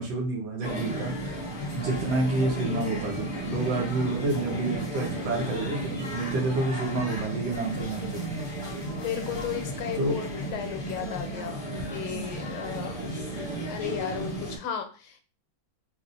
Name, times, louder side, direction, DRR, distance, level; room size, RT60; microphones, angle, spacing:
voice 1, 0.0-1.4 1.7-8.4 10.0-10.1, right 2 dB, 65° right, 0 dB, 1.6 m, -29 dB
sound 1, 0.6-14.6, right 1 dB, 55° left, 0.5 m, -34 dB
voice 2, 8.9-11.6 11.9-13.0 13.7-15.2, left 9 dB, 90° left, 6 dB, 1.6 m, -34 dB
4.2 x 2.5 x 2.6 m, 0.35 s
omnidirectional pair, 2.3 m